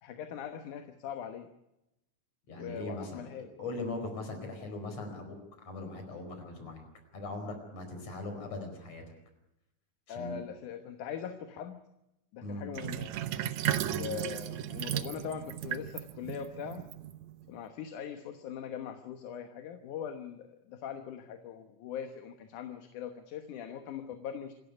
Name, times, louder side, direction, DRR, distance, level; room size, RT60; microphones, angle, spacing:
voice 1, 0.0-1.5 2.5-3.5 10.1-11.8 12.3-13.2 13.9-16.8 17.5-24.5, left 8 dB, 80° left, 7 dB, 2.7 m, -41 dB
voice 2, 2.5-3.2 3.6-6.9 7.1-9.0 10.1-10.4 12.4-12.7 13.8-14.1, left 2 dB, 55° left, 5 dB, 5.8 m, -40 dB
Sink (filling or washing), 12.7-17.5, right 11 dB, 70° right, 2.1 m, -35 dB
27.0 x 13.5 x 9.7 m, 0.89 s
omnidirectional pair, 3.5 m